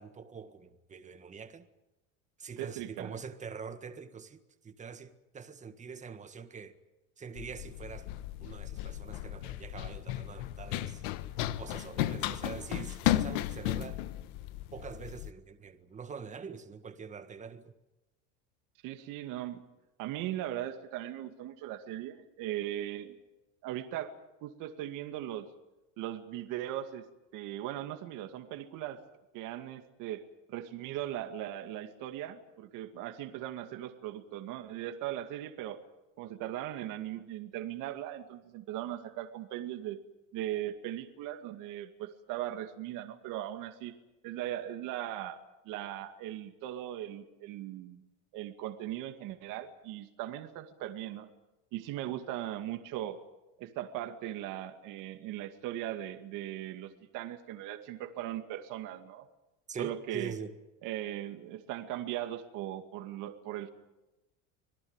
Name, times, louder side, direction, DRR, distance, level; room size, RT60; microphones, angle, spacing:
voice 1, 0.0-1.7 2.4-6.8 7.2-8.1 8.4-11.0 11.6-14.0 14.7-17.7 59.7-60.5, right 6 dB, 20° right, 1.7 m, -44 dB
voice 2, 2.6-3.1 18.8-19.6 20.0-23.2 23.6-24.1 24.4-25.5 26.0-27.1 27.3-29.0 29.3-30.2 30.5-35.8 36.2-40.0 40.3-43.9 44.2-45.4 45.7-48.0 48.3-51.3 51.7-53.2 53.6-59.3 59.8-60.3 60.8-63.7, right 12 dB, 60° right, 2.3 m, -39 dB
Run, 7.4-15.3, left 14 dB, 75° left, 1.4 m, -35 dB
26.0 x 18.0 x 9.0 m
supercardioid pair, 130°, 36 cm